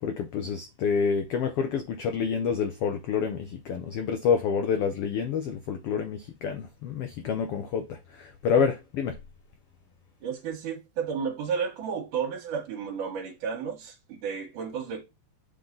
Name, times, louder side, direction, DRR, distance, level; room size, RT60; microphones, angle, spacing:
voice 1, 0.0-9.2, left 6 dB, 85° left, 1.2 m, -28 dB
voice 2, 10.2-15.0, right 6 dB, 75° right, 2.7 m, -32 dB
7.3 x 3.9 x 3.9 m
omnidirectional pair, 3.7 m